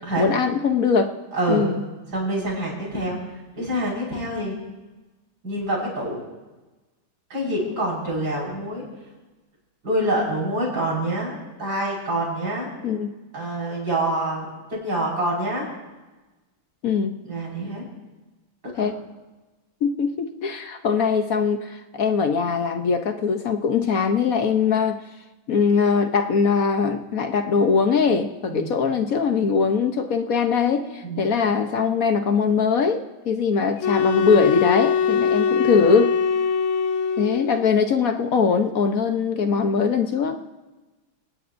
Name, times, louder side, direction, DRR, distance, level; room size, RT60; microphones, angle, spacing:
voice 1, 0.2-1.2 1.5-1.8 12.8-13.1 16.8-17.2 18.8-19.0 19.8-25.0 25.5-36.2 37.2-40.4, left 5 dB, 55° left, 6 dB, 1.0 m, -21 dB
voice 2, 1.3-1.7 2.1-3.2 3.6-4.6 5.4-6.2 7.3-8.8 9.8-12.7 13.3-15.7 17.2-17.9 18.7-18.9 28.5-28.7 31.0-31.2, right 1 dB, 50° right, -4 dB, 6.0 m, -26 dB
sound 1, 33.8-37.7, left 6 dB, 75° left, 1.6 m, -22 dB
28.0 x 18.5 x 2.6 m, 1.2 s
omnidirectional pair, 2.3 m